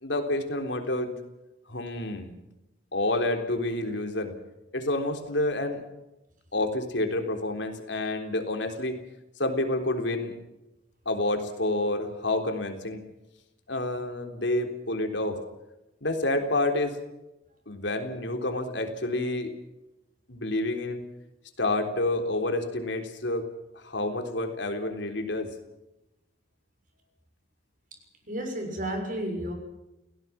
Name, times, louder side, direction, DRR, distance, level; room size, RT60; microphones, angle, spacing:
voice 1, 0.0-1.2 1.7-2.3 2.9-4.3 4.7-5.8 6.5-9.0 9.4-10.4 11.1-13.1 13.7-15.4 16.0-17.0 17.7-19.5 20.3-21.0 21.6-23.5 23.7-25.5, left 2 dB, 70° left, 5 dB, 3.6 m, -29 dB
voice 2, 28.3-29.5, right 1 dB, 45° right, 4 dB, 6.6 m, -32 dB
29.0 x 17.5 x 5.9 m, 0.95 s
head